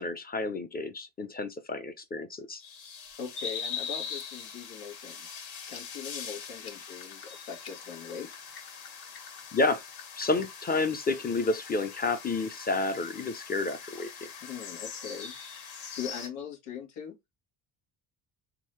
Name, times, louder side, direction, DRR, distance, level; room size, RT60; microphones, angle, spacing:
voice 1, 0.0-2.6 9.5-9.8 10.2-14.1, left 3 dB, 20° left, 0.6 m, -30 dB
sound 1, 2.6-16.3, left 6 dB, 70° left, 1.9 m, -42 dB
voice 2, 3.2-8.3 14.4-15.3 16.0-17.2, left 7 dB, 85° left, 1.7 m, -41 dB
sound 2, 5.6-10.6, left 7 dB, 50° left, 1.5 m, -51 dB
3.7 x 2.8 x 3.2 m
cardioid pair, 105°, 48 cm